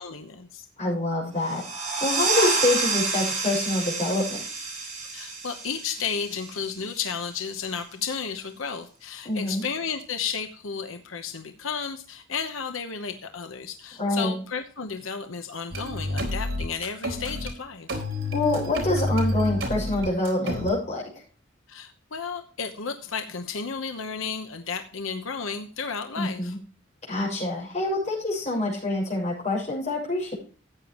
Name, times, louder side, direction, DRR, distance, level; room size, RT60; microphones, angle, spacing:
voice 1, 0.0-0.7 5.1-18.0 21.7-26.5, left 6 dB, 90° left, 6 dB, 1.0 m, -33 dB
voice 2, 0.8-1.6 2.0-4.4 9.2-9.6 14.0-14.3 18.3-21.0 26.2-26.6 27.1-30.3, left 2 dB, 35° left, -3 dB, 7.0 m, -26 dB
sound 1, 1.4-6.8, right 3 dB, 40° right, 6.8 m, -28 dB
sound 2, 15.7-17.5 17.9-20.7, left 1 dB, 80° right, 4.1 m, -29 dB
14.5 x 8.9 x 3.1 m, 0.41 s
head